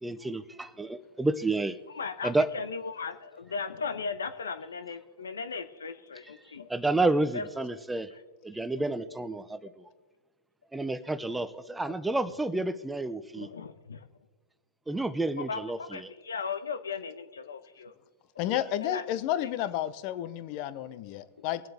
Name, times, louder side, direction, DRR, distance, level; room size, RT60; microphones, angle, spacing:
voice 1, 0.0-1.8 2.2-2.5 6.7-8.1 8.4-9.9 10.7-13.5 14.9-16.1 18.5-18.7, right 2 dB, 5° right, 13 dB, 0.6 m, -30 dB
voice 2, 1.9-6.7 7.3-7.4 11.8-11.9 13.4-14.0 15.5-15.6 15.9-17.9 18.8-19.0 19.4-19.5, left 5 dB, 85° left, 11 dB, 1.0 m, -37 dB
voice 3, 18.4-21.6, left 12 dB, 45° left, 14 dB, 0.8 m, -31 dB
23.0 x 7.8 x 3.5 m, 1.3 s
hypercardioid pair, 120°, 0 cm